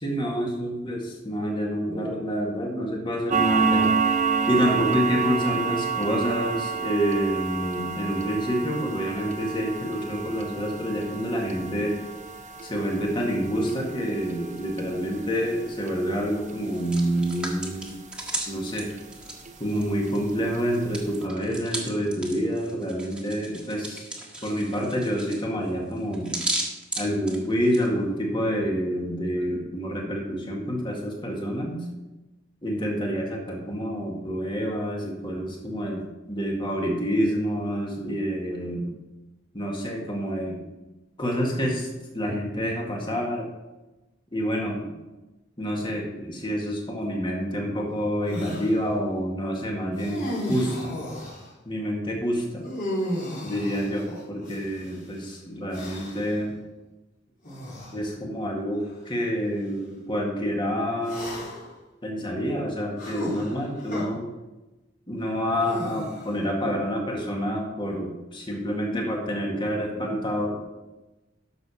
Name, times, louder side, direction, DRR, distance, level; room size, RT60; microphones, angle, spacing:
voice 1, 0.0-3.9 4.5-12.0 12.6-17.9 18.5-18.9 19.6-24.1 24.4-26.4 27.0-31.9 32.6-38.9 39.5-40.6 41.2-43.5 44.3-44.9 45.6-50.9 51.6-52.7 53.4-56.6 57.9-61.5 62.0-64.3 65.1-70.6, equal, 25° left, -1 dB, 2.1 m, -28 dB
sound 1, 3.3-18.4 18.8-19.0 19.4-19.5 20.0-20.1 20.5-20.6 20.9-21.1, right 5 dB, 40° right, 1.0 m, -29 dB
Hands, 16.6-20.3 20.6-27.9, right 1 dB, 5° right, 1.7 m, -35 dB
sound 2, 48.3-48.7 50.0-51.5 52.6-55.0 55.7-56.3 57.4-58.0 58.8-58.9 61.0-61.7 63.0-64.0 65.6-66.4, equal, 45° left, 3.7 m, -34 dB
12.0 x 6.9 x 4.4 m, 1.1 s
head